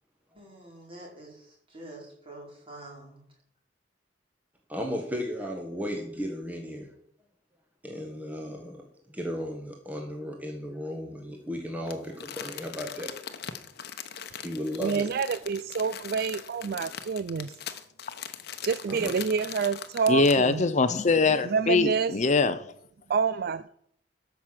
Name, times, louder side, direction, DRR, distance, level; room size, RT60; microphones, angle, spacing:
voice 1, 0.3-3.2, right 1 dB, 30° right, 4.8 m, -46 dB
voice 2, 4.7-6.9 7.8-8.8 9.1-13.1 14.3-15.0 18.9-19.2, equal, 10° right, 1.5 m, -35 dB
Crumpling crinkling, 11.9-20.5 21.0-21.1, left 8 dB, 60° left, 1.0 m, -41 dB
voice 3, 14.8-17.5 18.6-20.6 21.5-22.1 23.1-23.7, right 5 dB, 55° right, 0.4 m, -27 dB
voice 4, 20.1-22.7, left 3 dB, 40° left, 0.6 m, -23 dB
13.0 x 6.1 x 7.5 m
head